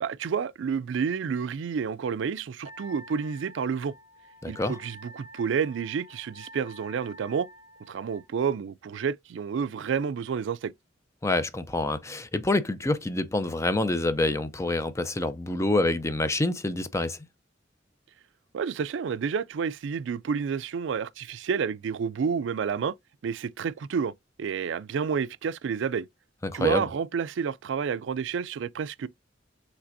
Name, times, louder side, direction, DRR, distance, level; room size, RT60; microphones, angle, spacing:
voice 1, 0.0-3.9 4.5-7.5 7.9-10.7 18.5-22.9 23.2-24.1 24.4-26.1 26.5-29.1, right 6 dB, 75° right, 0.4 m, -29 dB
Wind instrument woodwind instrument, 2.6-8.3, equal, 45° left, 1.0 m, -49 dB
voice 2, 4.4-4.8 11.2-17.2 26.4-26.8, left 2 dB, 15° left, 0.5 m, -27 dB
5.9 x 3.3 x 2.6 m
head